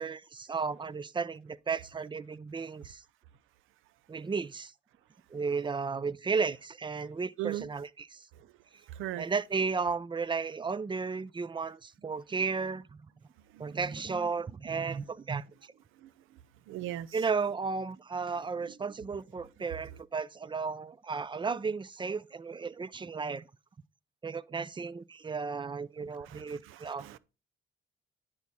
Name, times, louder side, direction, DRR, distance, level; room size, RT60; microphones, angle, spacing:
voice 1, 0.0-3.0 4.1-4.7 5.3-8.3 9.2-12.9 13.6-15.7 17.1-23.4 24.2-27.1, right 5 dB, 25° right, 0.4 m, -34 dB
voice 2, 8.9-9.3 13.5-13.7 16.0-16.1 16.7-17.1 26.2-27.2, right 14 dB, 90° right, 0.6 m, -38 dB
10.0 x 4.8 x 4.2 m
cardioid pair, 90°, 20 cm